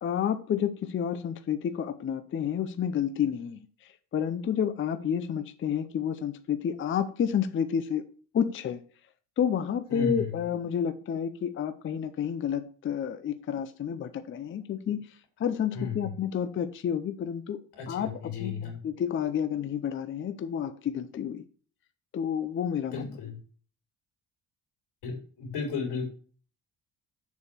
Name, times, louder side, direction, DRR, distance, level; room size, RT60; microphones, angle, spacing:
voice 1, 0.0-3.7 4.1-8.0 8.3-8.8 9.4-15.1 15.4-17.6 17.9-21.4 22.1-23.2, left 8 dB, 30° left, 10 dB, 0.5 m, -30 dB
voice 2, 9.9-10.3 15.7-16.1 17.7-18.7 22.9-23.3 25.0-26.1, left 5 dB, 90° left, 2 dB, 3.3 m, -34 dB
6.9 x 4.5 x 6.6 m, 0.42 s
cardioid pair, 165°, 39 cm